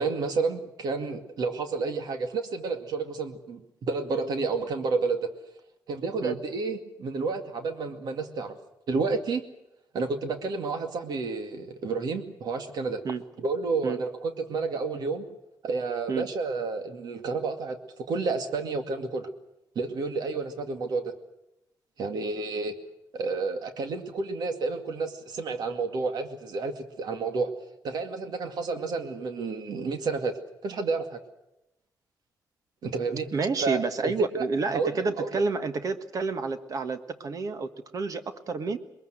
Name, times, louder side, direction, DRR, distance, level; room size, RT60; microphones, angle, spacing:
voice 1, 0.0-5.3 5.9-8.6 8.9-9.4 9.9-13.0 13.4-15.2 15.6-19.3 19.8-21.1 22.0-22.7 23.1-27.5 27.8-30.4 30.6-31.2 32.8-33.3 33.6-35.4, right 4 dB, 75° right, 6 dB, 2.3 m, -30 dB
voice 2, 33.3-38.8, right 4 dB, 55° right, 9 dB, 1.5 m, -29 dB
21.5 x 21.0 x 8.0 m, 0.87 s
cardioid pair, 110°, 7 cm